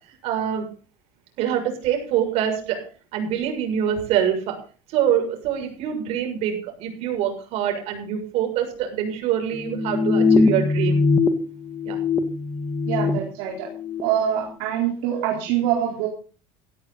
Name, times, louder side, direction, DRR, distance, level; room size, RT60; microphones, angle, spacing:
voice 1, 0.2-0.7 1.4-2.8 3.1-4.6 4.9-11.0 11.8-12.0, right 9 dB, 60° right, 4 dB, 6.9 m, -25 dB
sound 1, 9.5-11.3 11.6-13.2 13.6-14.0, left 4 dB, 15° left, 1.8 m, -21 dB
voice 2, 12.9-13.7 14.0-16.1, right 10 dB, 80° right, -1 dB, 4.1 m, -24 dB
16.5 x 14.5 x 4.1 m, 0.38 s
cardioid pair, 145°, 12 cm